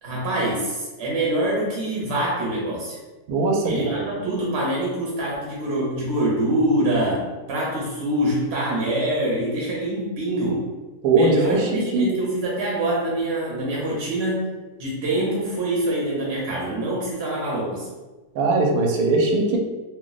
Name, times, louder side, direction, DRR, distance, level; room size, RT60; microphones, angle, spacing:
voice 1, 0.0-3.0 3.6-10.7 11.1-14.4 14.8-17.9, right 1 dB, 55° right, -5 dB, 0.8 m, -25 dB
voice 2, 3.3-4.0 11.0-12.1 18.3-19.6, right 3 dB, 75° right, 1 dB, 1.0 m, -20 dB
2.4 x 2.1 x 3.8 m, 1.2 s
omnidirectional pair, 1.6 m